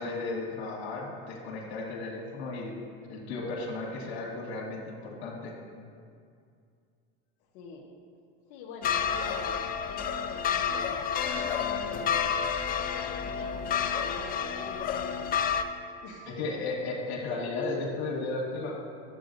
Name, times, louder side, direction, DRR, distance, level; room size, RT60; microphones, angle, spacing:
voice 1, 0.0-2.8 3.1-5.6 16.3-18.8, left 3 dB, 85° left, -2 dB, 1.7 m, -34 dB
voice 2, 7.5-7.9 8.5-12.3 12.8-15.5 16.0-16.3, left 3 dB, 60° left, -3 dB, 1.2 m, -44 dB
sound 1, 8.8-15.6, left 7 dB, 30° left, 0.4 m, -30 dB
11.5 x 8.0 x 2.6 m, 2.3 s
supercardioid pair, 115°, 31 cm